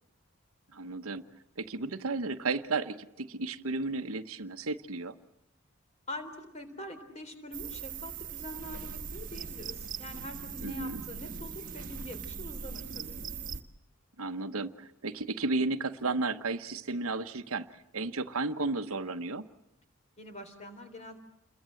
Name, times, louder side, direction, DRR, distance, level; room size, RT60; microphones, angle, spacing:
voice 1, 0.7-1.2 1.6-5.1 10.6-11.0 14.2-19.5, right 3 dB, 70° right, 10 dB, 1.0 m, -33 dB
voice 2, 6.1-13.2 20.2-21.2, left 1 dB, 30° left, 7 dB, 3.7 m, -44 dB
sound 1, 7.5-13.6, right 6 dB, 40° right, 1.4 m, -40 dB
29.0 x 22.5 x 7.8 m, 0.83 s
head